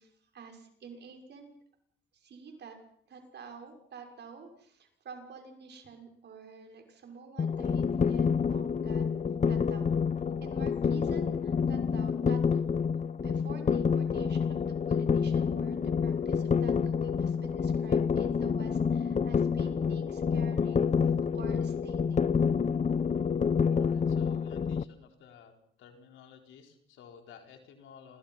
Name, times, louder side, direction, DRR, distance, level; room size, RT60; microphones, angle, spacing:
voice 1, 0.0-1.5 2.1-2.8 3.1-9.2 9.5-10.0 10.4-12.8 13.2-22.3, right 5 dB, 60° right, 4 dB, 6.1 m, -49 dB
sound 1, 7.4-24.8, left 6 dB, 35° left, 0.9 m, -28 dB
voice 2, 23.8-25.5 25.8-28.2, left 7 dB, 80° left, 4 dB, 4.3 m, -53 dB
28.0 x 21.0 x 5.8 m, 0.64 s
cardioid pair, 90°, 20 cm